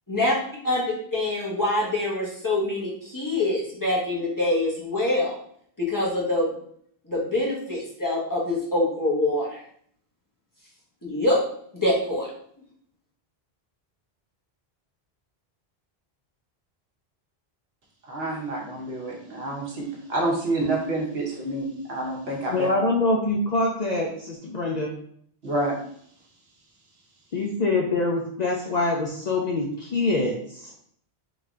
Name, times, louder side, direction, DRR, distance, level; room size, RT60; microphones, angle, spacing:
voice 1, 1.1-5.4 5.8-6.5 7.1-9.6 11.0-11.4 11.8-12.3, left 1 dB, 20° left, -6 dB, 1.2 m, -25 dB
voice 2, 18.0-22.7 25.4-25.8, right 2 dB, 75° right, -1 dB, 1.3 m, -28 dB
voice 3, 22.5-24.9 27.3-30.7, left 2 dB, 50° left, -1 dB, 0.6 m, -25 dB
3.9 x 2.7 x 3.6 m, 0.64 s
omnidirectional pair, 1.1 m